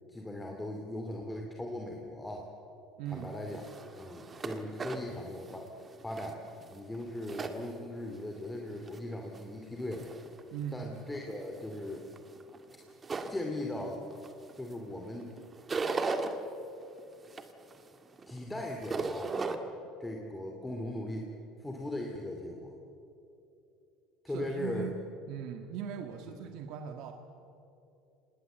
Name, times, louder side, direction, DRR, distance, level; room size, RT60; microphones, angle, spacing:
voice 1, 0.1-2.5 3.1-3.6 4.0-5.7 6.0-6.4 6.7-10.1 10.7-12.0 13.3-14.0 14.5-15.3 18.3-19.3 20.0-21.3 21.6-22.7 24.2-24.9, left 1 dB, 10° left, 1 dB, 2.6 m, -39 dB
voice 2, 3.0-3.4 10.5-10.9 24.3-25.0 25.3-27.1, right 9 dB, 65° right, 5 dB, 1.7 m, -39 dB
sound 1, 3.1-8.2 8.6-9.4 9.9-10.4 10.9-14.7 15.0-16.3 16.8-19.6, right 4 dB, 25° right, 1.9 m, -38 dB
26.5 x 20.0 x 8.0 m, 2.8 s
supercardioid pair, 115°, 0 cm